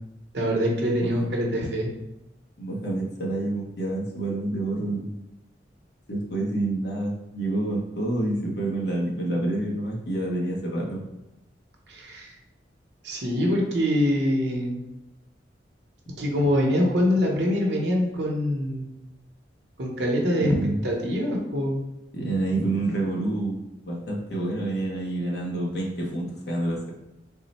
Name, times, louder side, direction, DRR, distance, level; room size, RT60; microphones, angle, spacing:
voice 1, 0.3-1.9 11.9-12.3 13.0-14.8 16.2-18.9 19.8-20.5 20.8-21.8, equal, 65° right, -1 dB, 0.7 m, -24 dB
voice 2, 2.6-5.1 6.1-11.0 20.4-20.8 22.1-26.9, right 2 dB, 60° left, -2 dB, 0.9 m, -28 dB
3.7 x 2.1 x 4.0 m, 0.94 s
head